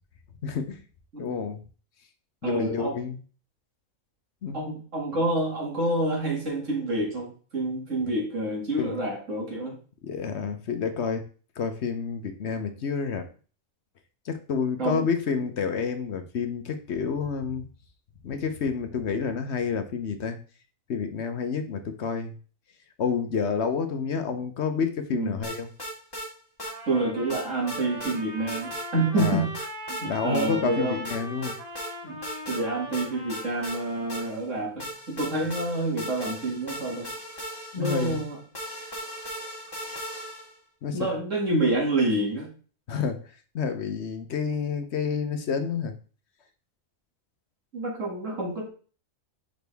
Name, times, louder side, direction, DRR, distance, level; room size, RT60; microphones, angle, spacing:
voice 1, 0.4-0.8 1.2-1.6 2.4-3.2 4.4-4.6 8.0-8.1 8.8-9.1 10.0-11.3 11.6-13.3 14.3-17.6 18.2-20.4 20.9-22.3 23.0-25.7 29.2-29.4 30.0-31.6 37.7-38.2 40.8-41.1 42.9-43.2 43.5-45.9, left 6 dB, 60° left, 8 dB, 1.0 m, -29 dB
voice 2, 2.4-3.0 4.5-9.8 14.8-15.0 25.1-25.3 26.9-29.5 29.9-31.0 32.0-32.2 32.5-37.1 37.7-38.4 40.9-42.5 47.7-48.7, right 2 dB, 65° right, -1 dB, 2.6 m, -28 dB
sound 1, 25.4-26.3 26.6-26.7 27.3-28.2 28.5-28.9 29.2-30.0 30.3-30.5 31.0-31.9 32.2-32.6 32.9-34.5 34.8-40.6, equal, 15° left, 1.8 m, -37 dB
Trumpet, 26.6-34.4, right 1 dB, 45° right, 3.1 m, -40 dB
6.3 x 5.1 x 3.4 m, 0.38 s
omnidirectional pair, 1.4 m